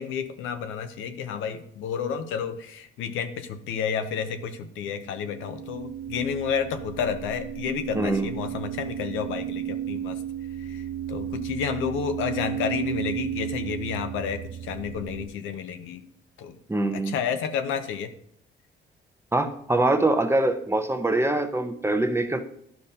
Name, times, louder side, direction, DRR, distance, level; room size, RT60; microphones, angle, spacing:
voice 1, 0.0-10.2 10.6-16.0 16.4-16.6 16.9-18.1, left 7 dB, 90° left, 8 dB, 0.7 m, -31 dB
sound 1, 5.1-15.3, right 10 dB, 45° right, 0.5 m, -34 dB
voice 2, 7.9-8.3 16.7-17.2 19.3-22.4, right 2 dB, 10° right, 7 dB, 0.7 m, -24 dB
11.5 x 5.2 x 2.8 m, 0.71 s
cardioid pair, 90°, 20 cm